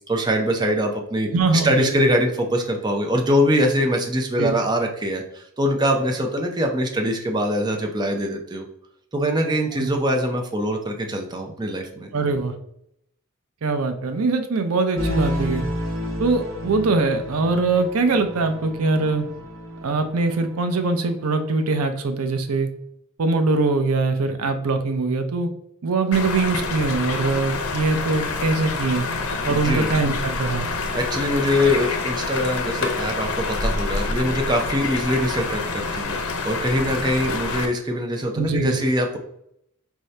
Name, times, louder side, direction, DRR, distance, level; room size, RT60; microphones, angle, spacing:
voice 1, 0.1-8.6 9.1-12.1 29.5-29.9 30.9-39.2, equal, 20° right, 3 dB, 0.5 m, -23 dB
voice 2, 1.3-2.1 4.4-4.6 9.8-9.9 12.1-12.5 13.6-15.6 16.2-19.3 19.8-22.7 23.2-25.5 25.8-29.1 29.4-30.7 38.4-38.8, right 3 dB, 90° right, 8 dB, 0.5 m, -22 dB
sound 1, 15.0-21.8, equal, 65° right, 1.0 m, -31 dB
sound 2, 26.1-37.7, left 4 dB, 90° left, 0.6 m, -27 dB
4.6 x 2.7 x 3.2 m, 0.75 s
head